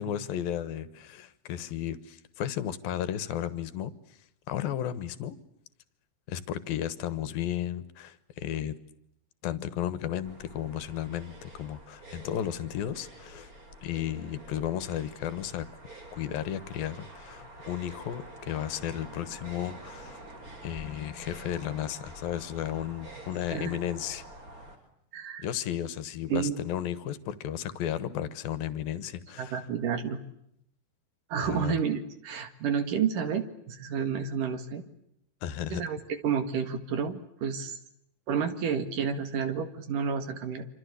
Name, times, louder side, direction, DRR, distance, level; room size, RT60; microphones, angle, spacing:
voice 1, 0.0-3.9 4.5-5.4 6.3-8.8 9.4-13.5 13.8-15.7 16.1-20.2 20.6-24.2 25.4-29.6 31.4-31.8 35.4-35.8, left 10 dB, 70° left, 15 dB, 2.9 m, -34 dB
sound 1, 10.2-24.8, right 1 dB, 20° right, 4.4 m, -47 dB
voice 2, 25.1-25.5 26.3-26.6 29.4-30.2 31.3-34.8 35.7-36.0 36.2-37.8 38.3-40.7, right 7 dB, 60° right, 10 dB, 3.2 m, -30 dB
26.5 x 26.5 x 8.3 m, 0.76 s
omnidirectional pair, 4.7 m